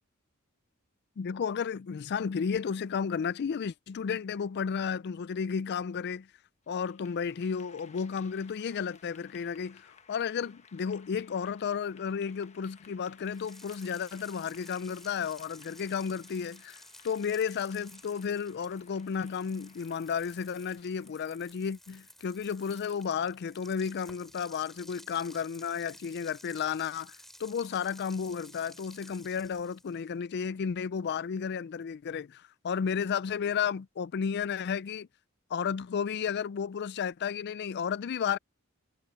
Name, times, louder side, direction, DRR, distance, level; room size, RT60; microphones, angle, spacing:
voice 1, 1.2-6.3 6.7-16.8 17.0-27.1 27.4-35.1 35.5-38.4, left 6 dB, 50° left, 0.4 m, -33 dB
Clapping / Applause, 6.6-21.9, left 6 dB, 35° left, 1.2 m, -59 dB
sound 1, 13.2-30.1, equal, ahead, 4.0 m, -54 dB
head